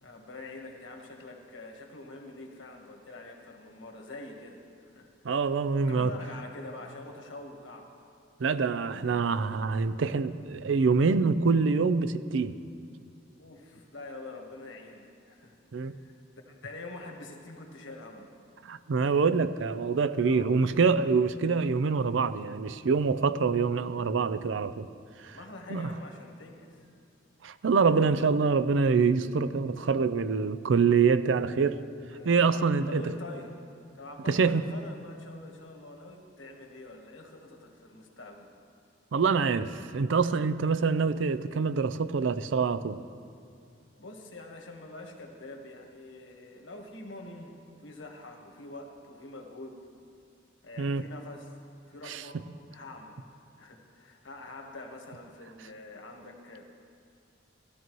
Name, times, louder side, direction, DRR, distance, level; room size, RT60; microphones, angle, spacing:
voice 1, 0.0-5.4 5.9-7.9 13.4-15.5 15.8-16.2 16.5-18.3 20.2-20.8 25.2-26.9 32.1-33.5 33.9-38.5 44.0-49.8 50.6-51.5 51.9-52.4 52.7-56.6, left 2 dB, 80° left, 2 dB, 1.4 m, -45 dB
voice 2, 5.2-6.1 8.4-12.6 15.7-15.9 18.6-24.9 25.2-25.4 25.7-25.9 27.4-31.8 32.2-33.0 34.3-34.6 39.1-43.0 50.8-51.0 52.1-52.2, right 5 dB, 75° right, 14 dB, 0.5 m, -25 dB
16.0 x 12.5 x 3.1 m, 2.5 s
head